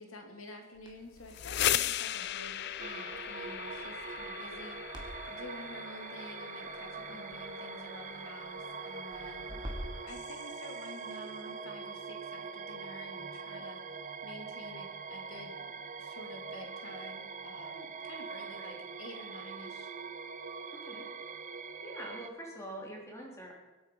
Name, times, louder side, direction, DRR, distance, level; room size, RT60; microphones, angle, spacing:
voice 1, 0.0-4.8 5.3-9.7 10.0-13.8 14.2-19.9, left 1 dB, 80° left, 3 dB, 2.8 m, -49 dB
Crackle, 0.7-10.0, equal, 20° right, 2.2 m, -50 dB
sound 1, 1.1-10.9, left 12 dB, 55° left, 0.4 m, -38 dB
sound 2, 2.8-22.3, right 5 dB, 40° right, 0.9 m, -43 dB
voice 2, 20.7-21.0 21.8-23.5, right 1 dB, 15° left, -2 dB, 3.6 m, -45 dB
22.5 x 8.9 x 5.4 m, 1.2 s
head